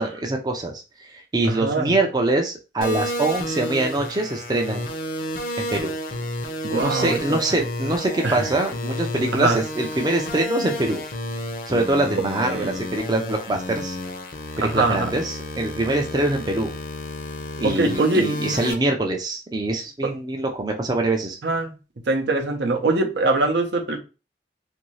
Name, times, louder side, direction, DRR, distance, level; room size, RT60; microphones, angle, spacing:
voice 1, 0.0-4.9 5.6-5.9 6.7-11.0 11.7-14.0 14.6-16.7 17.6-21.4, right 2 dB, 20° right, 0.4 m, -24 dB
voice 2, 1.4-1.9 6.6-7.4 8.2-8.5 9.3-9.6 12.4-12.8 14.6-15.1 17.6-18.3 21.4-21.7 22.1-24.0, right 2 dB, 80° right, 0.7 m, -23 dB
sound 1, 2.8-18.7, left 1 dB, 50° left, 0.5 m, -31 dB
2.7 x 2.6 x 3.1 m
head